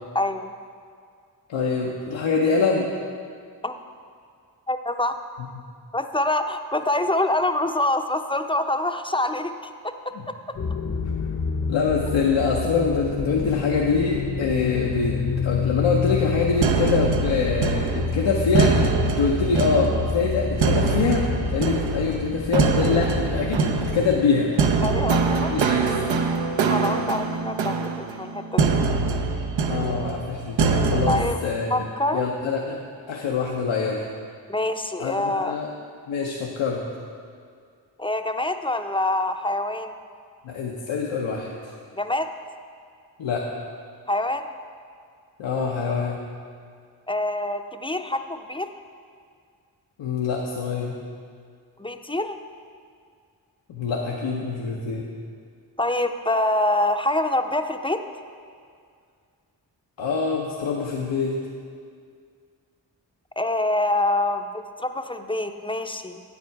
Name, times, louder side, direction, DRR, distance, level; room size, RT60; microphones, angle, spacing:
voice 1, 0.1-0.5 3.6-3.8 4.7-5.2 5.9-9.9 24.8-25.5 26.7-28.8 31.1-31.4 31.7-32.2 34.5-35.5 38.0-39.9 41.9-42.3 44.1-44.5 47.1-48.7 51.8-52.4 55.8-58.0 63.4-66.2, left 1 dB, 10° left, 7 dB, 0.5 m, -25 dB
voice 2, 1.5-2.9 10.2-10.3 11.7-24.5 25.3-25.8 29.7-31.7 32.1-32.8 33.1-34.0 35.0-35.7 36.1-36.8 40.4-41.7 43.2-43.5 45.4-46.2 50.0-50.9 53.7-55.1 60.0-61.4, left 5 dB, 85° left, -2 dB, 0.8 m, -25 dB
sound 1, 10.5-24.2, left 5 dB, 40° left, 0.8 m, -28 dB
sound 2, 16.6-31.3, right 4 dB, 80° right, 0.7 m, -24 dB
8.5 x 8.2 x 4.6 m, 2.2 s
cardioid pair, 40°, 45 cm